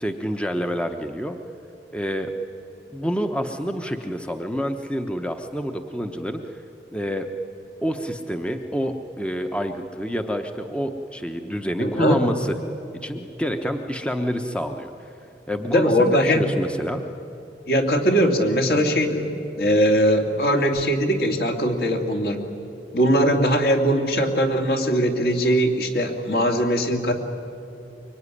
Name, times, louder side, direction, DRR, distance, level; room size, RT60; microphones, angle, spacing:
voice 1, 0.0-1.4 1.9-2.3 2.9-6.4 6.9-7.3 7.8-12.6 13.0-14.9 15.5-17.0, equal, 5° left, 5 dB, 0.9 m, -27 dB
voice 2, 11.8-12.2 15.7-16.5 17.7-22.4 22.9-27.1, equal, 60° left, 3 dB, 2.7 m, -20 dB
24.0 x 23.5 x 9.9 m, 2.8 s
head